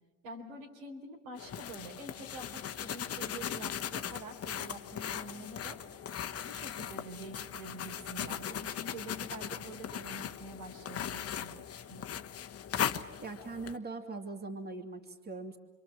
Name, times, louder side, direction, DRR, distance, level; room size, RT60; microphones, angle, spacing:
voice 1, 0.2-5.8 6.4-12.2, right 2 dB, 90° right, 1 dB, 4.3 m, -47 dB
sound 1, 1.4-13.8, left 9 dB, 35° left, 1.1 m, -39 dB
voice 2, 13.2-15.6, right 3 dB, 25° right, 3 dB, 2.7 m, -41 dB
27.5 x 23.0 x 7.5 m, 1.2 s
supercardioid pair, 95°, 39 cm